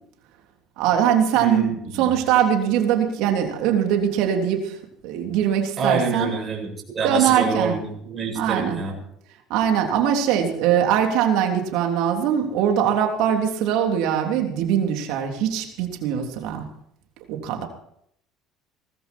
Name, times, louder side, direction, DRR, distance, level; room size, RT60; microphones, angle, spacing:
voice 1, 0.8-4.8 5.0-6.3 7.0-7.8 8.3-8.8 9.5-16.6 17.3-17.7, right 9 dB, 75° right, 3 dB, 3.4 m, -22 dB
voice 2, 1.4-2.1 5.8-6.7 6.9-9.0, right 5 dB, 35° right, 1 dB, 7.5 m, -26 dB
19.5 x 13.5 x 4.6 m, 0.70 s
supercardioid pair, 85°, 0 cm